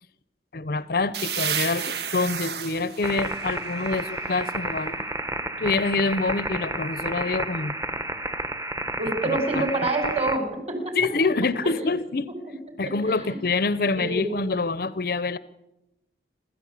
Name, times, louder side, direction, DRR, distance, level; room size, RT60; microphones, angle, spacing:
voice 1, 0.5-5.0 5.6-7.8 9.2-9.6 11.0-12.3 12.8-15.4, left 3 dB, 55° left, 0.7 m, -26 dB
sound 1, 1.1-4.7, right 8 dB, 65° right, 1.4 m, -32 dB
sound 2, 3.0-10.4, right 1 dB, 15° right, 1.2 m, -31 dB
voice 2, 9.0-10.9 13.0-13.4 14.0-14.4, right 2 dB, 35° right, 5.2 m, -27 dB
28.0 x 13.5 x 8.4 m
head